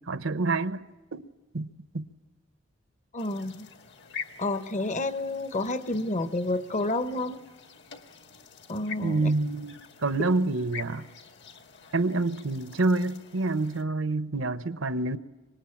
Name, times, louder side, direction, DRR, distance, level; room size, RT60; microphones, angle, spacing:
voice 1, 0.1-0.8 1.1-1.3 1.5-1.7 1.9-2.0 9.0-11.1 11.9-15.2, right 2 dB, 75° right, 1.0 m, -27 dB
voice 2, 3.1-3.7 4.4-7.4 8.7-9.3, left 2 dB, 40° left, 1.0 m, -30 dB
sound 1, 3.2-13.8, left 7 dB, 60° left, 1.8 m, -46 dB
25.0 x 21.0 x 8.6 m
head